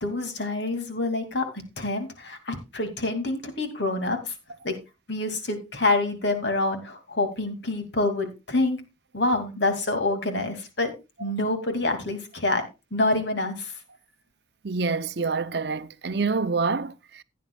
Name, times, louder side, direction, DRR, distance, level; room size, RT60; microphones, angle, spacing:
voice 1, 0.0-4.3 4.6-4.8 5.1-8.8 9.1-10.9 11.2-12.7 12.9-13.7, left 2 dB, 65° left, 2.5 m, -27 dB
voice 2, 14.6-17.2, right 4 dB, 60° right, 0.6 m, -27 dB
16.0 x 9.4 x 2.3 m
head